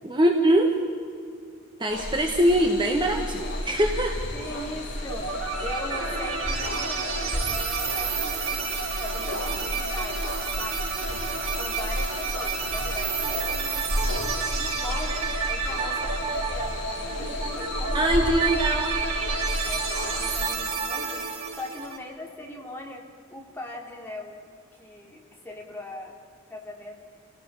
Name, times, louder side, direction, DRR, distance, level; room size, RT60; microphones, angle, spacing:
voice 1, 0.1-0.7 1.8-4.2 17.9-19.0, right 1 dB, 25° right, 2 dB, 1.6 m, -22 dB
sound 1, 1.9-20.5, left 1 dB, 55° left, 6.6 m, -33 dB
voice 2, 4.3-5.3 5.6-10.3 10.6-18.2 19.6-23.0 23.3-24.5 24.8-26.1 26.5-27.0, left 1 dB, 10° left, -1 dB, 3.4 m, -40 dB
sound 2, 5.1-22.0, right 5 dB, 90° right, 5.3 m, -30 dB
29.5 x 18.0 x 5.7 m, 2.1 s
head